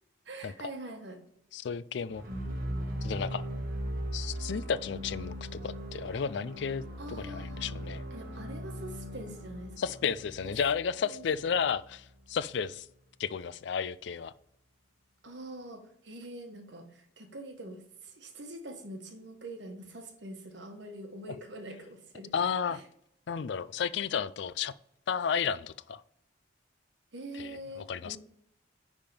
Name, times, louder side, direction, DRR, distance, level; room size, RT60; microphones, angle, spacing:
voice 1, 0.2-1.2 7.0-7.7 8.1-9.7 11.0-11.2 15.2-22.3 22.7-22.8 27.1-28.2, right 1 dB, 70° right, 5 dB, 1.3 m, -44 dB
voice 2, 1.5-2.2 3.0-3.4 4.1-8.0 9.8-12.9 13.2-14.3 22.3-22.8 23.3-24.7 25.1-26.0 27.3-28.2, left 6 dB, 65° left, 17 dB, 0.4 m, -33 dB
sound 1, 2.1-12.1, equal, 50° right, 1.4 m, -39 dB
10.0 x 3.6 x 5.2 m, 0.72 s
head